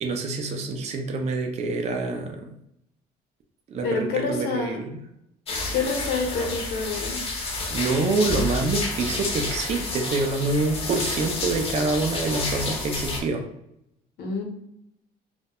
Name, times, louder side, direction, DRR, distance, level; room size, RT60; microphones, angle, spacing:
voice 1, 0.0-2.6 3.7-5.0 7.7-13.4, right 3 dB, 40° right, 4 dB, 0.4 m, -26 dB
voice 2, 3.8-4.8 5.7-7.2 14.2-14.4, left 4 dB, 70° left, 2 dB, 0.7 m, -27 dB
sound 1, 5.5-13.2, left 3 dB, 35° left, 0.6 m, -30 dB
2.2 x 2.1 x 2.8 m, 0.79 s
cardioid pair, 110°, 17 cm